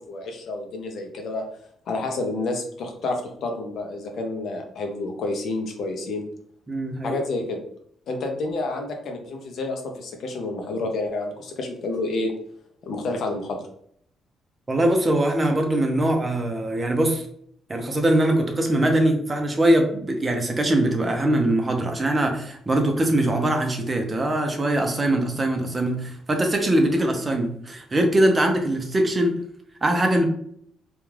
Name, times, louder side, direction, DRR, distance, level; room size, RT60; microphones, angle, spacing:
voice 1, 0.1-1.4 1.9-6.2 7.0-7.6 8.1-12.3 12.8-13.6, left 2 dB, 65° left, 3 dB, 0.6 m, -29 dB
voice 2, 6.7-7.2 14.7-17.3 17.7-29.3 29.8-30.2, right 1 dB, 25° right, 3 dB, 0.5 m, -22 dB
2.3 x 2.3 x 3.2 m, 0.67 s
cardioid pair, 90°, 0 cm